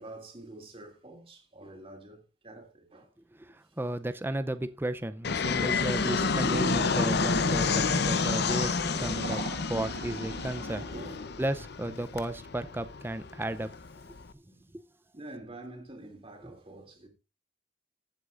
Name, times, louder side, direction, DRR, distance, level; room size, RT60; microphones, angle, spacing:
voice 1, 0.0-3.1 10.9-11.4 14.5-14.7 15.1-17.1, right 1 dB, 30° right, 2.7 m, -47 dB
voice 2, 3.4-9.4 9.7-10.9 11.4-13.7 14.3-14.4 14.7-14.8, right 1 dB, 10° right, 0.5 m, -34 dB
Fixed-wing aircraft airplane, 5.2-14.3, left 4 dB, 60° left, 0.7 m, -29 dB
sound 1, 6.0-11.1, right 2 dB, 75° right, 1.9 m, -40 dB
15.5 x 7.9 x 2.5 m
head